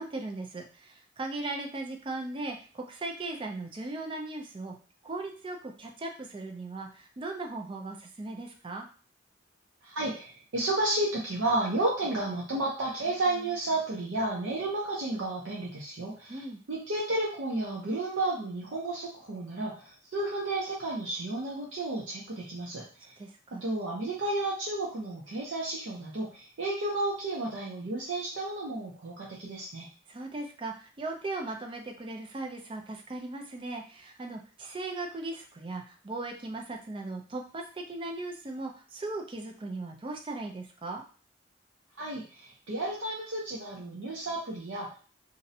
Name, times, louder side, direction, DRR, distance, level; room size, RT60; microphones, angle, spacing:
voice 1, 0.0-4.7 5.0-8.9 16.3-16.6 23.2-23.6 30.1-41.0, right 2 dB, 25° right, 2 dB, 0.4 m, -38 dB
voice 2, 9.8-22.8 23.5-29.9 42.0-45.0, right 2 dB, 75° right, -4 dB, 0.5 m, -32 dB
2.5 x 2.0 x 2.6 m, 0.39 s
head